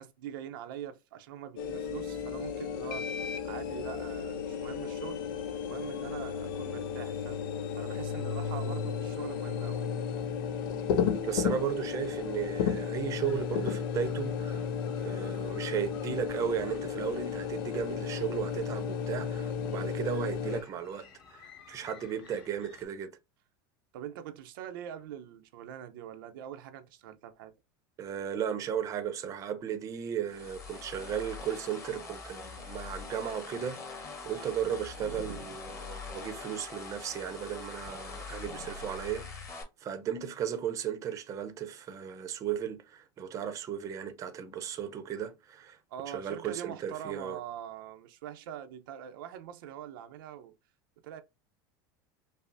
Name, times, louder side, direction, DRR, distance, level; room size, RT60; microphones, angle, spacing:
voice 1, 0.0-3.1 3.4-5.2 5.6-7.4 7.8-10.0 23.9-27.5 35.0-35.6 37.9-38.0 45.9-50.5 51.0-51.2, right 10 dB, 85° right, 0.6 m, -43 dB
sound 1, 1.6-20.6, left 7 dB, 80° left, 0.6 m, -34 dB
voice 2, 11.2-14.7 14.9-23.1 28.0-45.8 46.1-47.4, right 8 dB, 30° right, 0.6 m, -35 dB
sound 2, 13.2-22.9, left 5 dB, 50° left, 1.9 m, -56 dB
sound 3, 30.3-39.6, left 4 dB, 25° left, 1.3 m, -43 dB
5.4 x 2.0 x 2.6 m
supercardioid pair, 150°, 11 cm